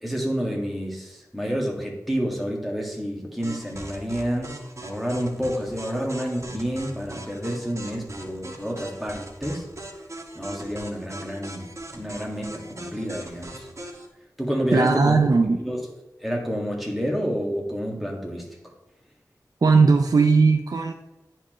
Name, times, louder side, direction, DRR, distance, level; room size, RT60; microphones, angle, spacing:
voice 1, 0.0-9.7 10.3-13.7 14.4-15.2 15.6-15.8 16.2-18.5, equal, ahead, -1 dB, 1.6 m, -29 dB
sound 1, 3.4-14.1, right 1 dB, 45° right, 1.0 m, -40 dB
voice 2, 14.7-15.6 19.6-20.9, right 4 dB, 65° right, 4 dB, 0.4 m, -18 dB
9.7 x 4.4 x 3.0 m, 0.99 s
wide cardioid pair, 75°, 7 cm